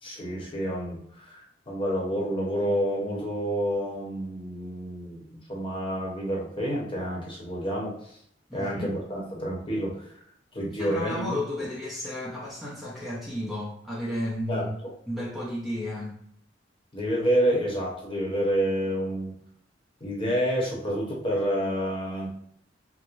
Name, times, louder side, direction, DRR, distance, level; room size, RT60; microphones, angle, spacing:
voice 1, 0.0-8.2 8.5-10.1 10.5-11.3 14.5-14.7 16.9-19.3 20.0-22.3, equal, 30° left, -3 dB, 1.0 m, -29 dB
voice 2, 8.5-8.9 10.7-14.7 15.1-16.2, left 1 dB, ahead, -7 dB, 0.7 m, -33 dB
4.6 x 2.1 x 2.5 m, 0.68 s
head